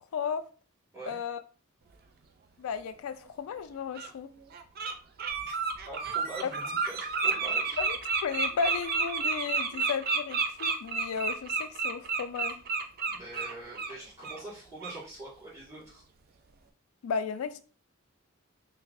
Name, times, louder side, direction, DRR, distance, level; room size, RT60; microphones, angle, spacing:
voice 1, 0.1-0.4 1.1-1.4 2.6-4.3 6.4-6.5 7.8-12.6 17.0-17.6, left 6 dB, 75° left, 0.3 m, -34 dB
Bird, 3.1-3.2 3.9-4.1 4.5-4.9 5.2-13.9 14.2-14.4 14.8-15.0, right 4 dB, 45° right, 0.4 m, -30 dB
voice 2, 5.8-7.8 13.1-16.0, right 2 dB, 15° right, 1.9 m, -43 dB
5.7 x 2.0 x 2.5 m
head